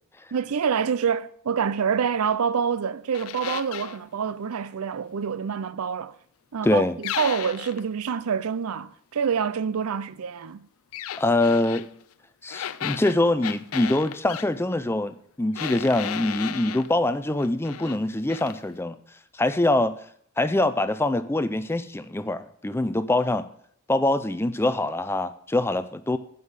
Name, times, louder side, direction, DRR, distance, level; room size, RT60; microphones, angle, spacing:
voice 1, 0.3-6.2 6.5-10.7, right 7 dB, 80° right, 0.5 m, -27 dB
sound 1, 3.1-4.0 7.0-7.8 10.9-11.9 12.5-14.5 15.5-16.9 17.4-18.0 18.3-18.6, left 10 dB, 70° left, 0.4 m, -34 dB
voice 2, 6.6-6.9 11.2-11.9 12.4-19.0 19.3-19.9 20.4-23.5 23.9-26.2, left 2 dB, 10° left, 0.4 m, -24 dB
9.6 x 5.6 x 7.2 m
head